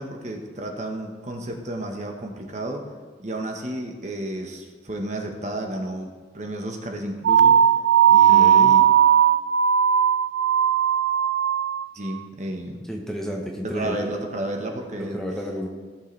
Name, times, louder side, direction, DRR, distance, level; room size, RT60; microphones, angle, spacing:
voice 1, 0.0-2.8 3.2-6.1 6.3-7.6 8.1-8.8 11.9-12.8 13.6-15.2, right 1 dB, 40° right, 2 dB, 1.2 m, -31 dB
sound 1, 7.2-11.9, right 9 dB, 85° right, 0.3 m, -17 dB
voice 2, 8.3-8.8 12.9-14.1 15.0-15.7, equal, 5° left, 0 dB, 0.9 m, -31 dB
17.0 x 6.5 x 3.3 m, 1.5 s
head